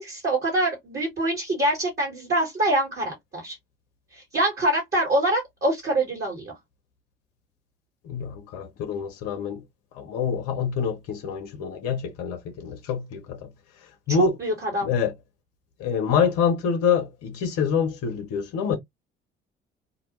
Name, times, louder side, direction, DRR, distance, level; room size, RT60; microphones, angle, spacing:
voice 1, 0.0-3.6 4.1-6.5 14.4-14.9, right 1 dB, 35° right, 1.3 m, -25 dB
voice 2, 8.0-9.6 10.0-13.5 14.1-14.3 14.8-15.1 15.8-18.8, left 6 dB, 55° left, 0.7 m, -26 dB
2.2 x 2.1 x 2.9 m
figure-of-eight pair, 50°, 30 cm